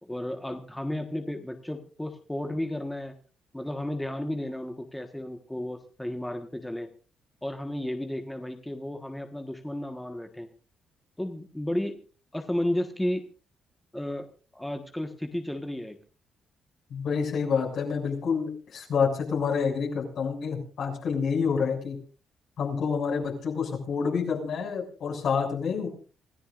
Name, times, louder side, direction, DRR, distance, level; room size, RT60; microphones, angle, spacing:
voice 1, 0.0-3.1 3.5-6.9 7.4-10.5 11.2-12.0 12.3-13.2 13.9-14.3 14.5-16.0, left 1 dB, 5° left, 5 dB, 1.4 m, -33 dB
voice 2, 16.9-22.0 22.6-25.9, left 6 dB, 65° left, 1 dB, 6.7 m, -28 dB
27.5 x 15.0 x 2.6 m, 0.36 s
cardioid pair, 100°, 0 cm